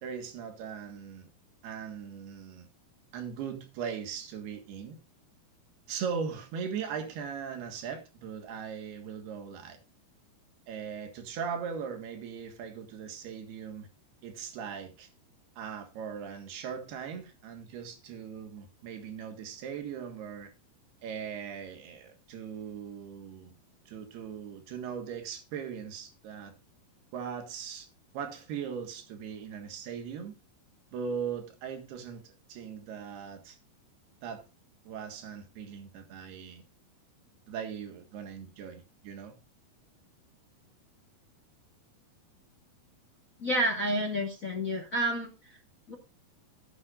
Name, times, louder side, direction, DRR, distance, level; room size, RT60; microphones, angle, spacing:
voice 1, 0.0-1.3 1.6-2.7 3.1-5.0 5.9-9.8 10.7-13.9 14.2-15.1 15.6-20.5 21.0-23.5 23.9-26.5 27.1-27.9 28.1-30.4 30.9-33.6 34.2-34.4 34.9-36.6 37.5-39.4, right 7 dB, 90° right, 3.7 m, -39 dB
voice 2, 43.4-45.3 45.9-46.0, equal, 45° left, 1.0 m, -29 dB
16.0 x 9.4 x 2.5 m
omnidirectional pair, 4.4 m